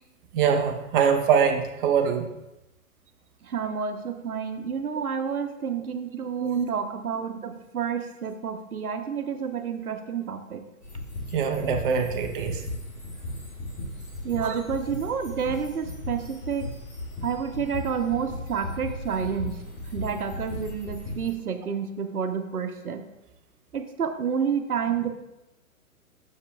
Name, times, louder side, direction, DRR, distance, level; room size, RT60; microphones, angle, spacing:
voice 1, 0.3-2.3 6.4-6.7 11.3-12.6 14.4-14.6, right 7 dB, 35° right, 4 dB, 0.8 m, -23 dB
voice 2, 3.4-10.6 14.2-16.7 17.2-19.6 19.9-23.0 23.7-25.1, right 7 dB, 80° right, 8 dB, 0.9 m, -29 dB
sound 1, 10.8-21.3, left 2 dB, 20° left, 2.1 m, -36 dB
9.6 x 6.5 x 2.3 m, 0.92 s
figure-of-eight pair, 125°, 44 cm